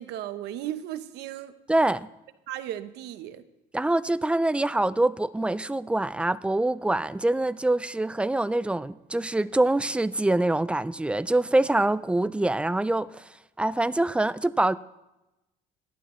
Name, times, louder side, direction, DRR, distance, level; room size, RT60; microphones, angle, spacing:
voice 1, 0.0-1.5 2.5-3.4, right 12 dB, 80° right, 12 dB, 0.8 m, -35 dB
voice 2, 1.7-2.1 3.7-13.3 13.6-14.8, right 2 dB, 5° right, 16 dB, 0.3 m, -25 dB
17.5 x 12.0 x 3.1 m, 0.96 s
cardioid pair, 110°, 17 cm